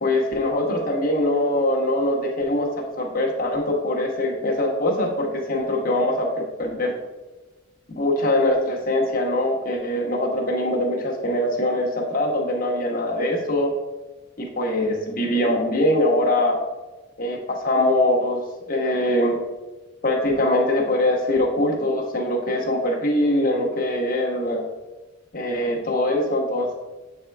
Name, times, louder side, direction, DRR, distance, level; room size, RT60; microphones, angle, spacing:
voice 1, 0.0-2.7 3.0-6.3 6.6-6.9 8.0-13.7 14.4-16.6 17.2-19.4 20.0-24.6 25.3-26.7, left 1 dB, 45° left, -1 dB, 1.1 m, -22 dB
8.0 x 3.6 x 3.4 m, 1.1 s
head